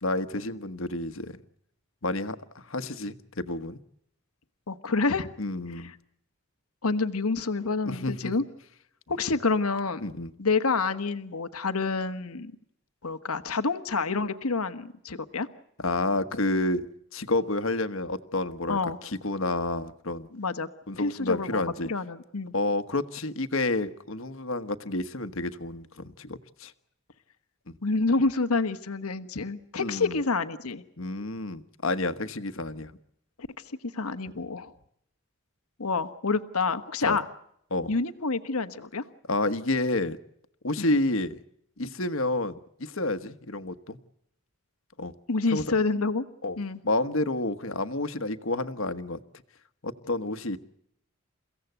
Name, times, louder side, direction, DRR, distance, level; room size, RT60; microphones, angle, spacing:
voice 1, 0.0-1.4 2.0-3.8 5.4-5.9 7.8-8.3 10.0-10.3 15.8-16.9 17.1-20.3 20.9-21.9 22.5-26.7 27.7-27.8 29.8-30.2 31.0-33.0 34.3-34.5 37.0-37.2 37.7-37.9 39.3-40.2 40.6-41.4 41.8-44.0 45.0-45.1 45.5-45.7 46.4-46.6 46.8-49.2 49.8-50.6, left 2 dB, 65° left, 10 dB, 1.3 m, -30 dB
voice 2, 4.7-5.3 6.8-8.4 9.1-10.1 10.4-12.5 13.0-15.5 18.7-19.0 20.3-20.7 21.0-22.5 27.8-30.8 33.4-33.5 33.9-34.7 35.8-37.2 37.9-39.0 40.8-40.9 45.3-46.2 46.6-46.8, left 3 dB, 90° left, 10 dB, 1.3 m, -28 dB
30.0 x 16.5 x 8.1 m, 0.75 s
head